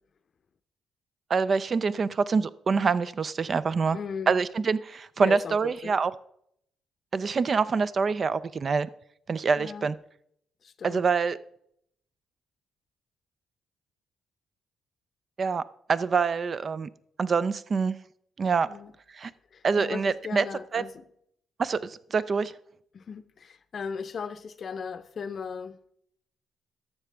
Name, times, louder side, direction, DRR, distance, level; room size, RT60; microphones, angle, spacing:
voice 1, 1.3-4.0 4.3-6.1 7.1-8.9 9.3-9.9 10.8-11.4 15.4-15.6 15.9-16.9 17.2-18.0 18.4-18.7 19.2-19.3 19.6-20.4 20.7-20.8 21.6-22.5, right 5 dB, 40° right, 0.3 m, -25 dB
voice 2, 3.9-4.4 5.2-6.0 9.6-9.9 10.6-11.0 18.7-18.9 19.5-21.0 22.9-25.8, left 6 dB, 50° left, 0.6 m, -37 dB
12.0 x 6.7 x 3.4 m
cardioid pair, 90°, 0 cm